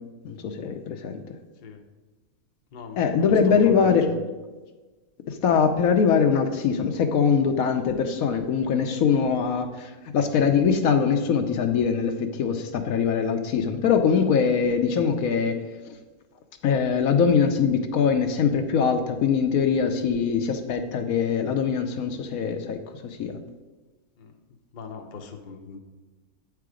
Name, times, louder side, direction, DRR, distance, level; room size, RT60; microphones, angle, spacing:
voice 1, 0.2-1.2 3.0-4.1 5.3-15.6 15.8-16.0 16.6-23.3, left 6 dB, 75° left, 6 dB, 1.1 m, -22 dB
voice 2, 2.7-4.2 9.3-9.5 24.2-24.4 24.7-25.8, left 5 dB, 45° left, 4 dB, 0.7 m, -40 dB
8.4 x 4.7 x 4.9 m, 1.2 s
omnidirectional pair, 1.6 m